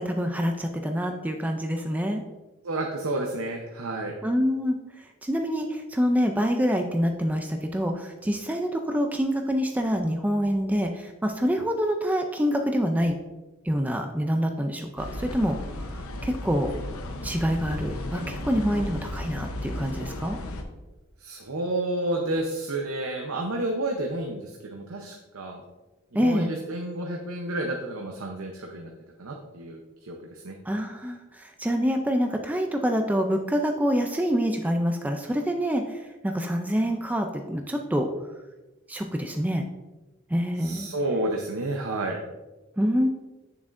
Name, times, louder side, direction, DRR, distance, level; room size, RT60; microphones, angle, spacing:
voice 1, 0.0-2.2 4.2-13.2 13.6-15.9 16.2-16.7 17.2-20.4 26.1-26.5 30.7-38.1 38.9-39.6 40.3-40.9 42.8-43.1, equal, 5° right, 4 dB, 0.4 m, -26 dB
voice 2, 2.6-4.2 21.2-25.6 26.2-28.9 29.2-30.6 40.6-42.2, right 2 dB, 70° right, 2 dB, 0.8 m, -30 dB
sound 1, 15.0-20.6, left 1 dB, 75° left, 0.8 m, -34 dB
8.6 x 7.0 x 2.5 m, 1.1 s
head